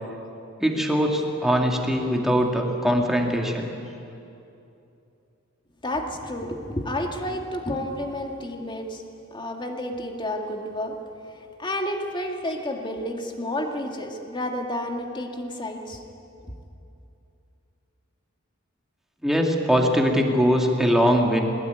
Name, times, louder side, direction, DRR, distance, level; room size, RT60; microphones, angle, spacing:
voice 1, 0.6-3.7 19.2-21.4, equal, ahead, 1 dB, 2.3 m, -21 dB
voice 2, 5.8-9.0 9.3-11.0 11.6-16.0, left 1 dB, 20° left, 3 dB, 2.0 m, -30 dB
20.5 x 20.0 x 9.4 m, 2.7 s
head